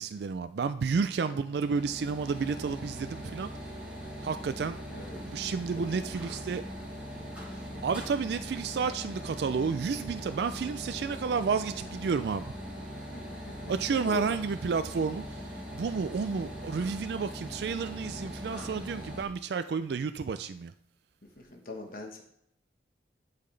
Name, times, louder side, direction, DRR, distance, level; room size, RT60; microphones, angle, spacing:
voice 1, 0.0-3.5 4.2-4.8 5.1-6.6 7.8-12.5 13.7-15.2 15.7-20.7, right 5 dB, 65° right, 10 dB, 0.3 m, -31 dB
sound 1, 1.5-19.2, equal, 10° right, 3.1 m, -41 dB
voice 2, 4.9-5.2 5.9-6.3 13.1-13.6 14.0-14.2 21.4-22.2, left 3 dB, 50° left, 2 dB, 1.2 m, -42 dB
12.0 x 5.7 x 3.3 m, 0.73 s
head